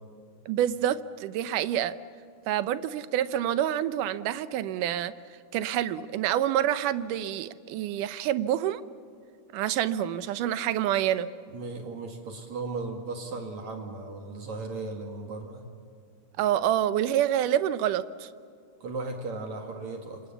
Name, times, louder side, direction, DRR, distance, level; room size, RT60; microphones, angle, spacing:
voice 1, 0.5-1.9 2.5-5.1 5.5-8.8 9.5-11.3 16.4-18.3, right 11 dB, 90° right, 13 dB, 2.4 m, -27 dB
voice 2, 11.5-15.7 18.8-20.2, right 3 dB, 65° right, 3 dB, 3.3 m, -36 dB
27.5 x 27.0 x 7.2 m, 2.3 s
omnidirectional pair, 3.6 m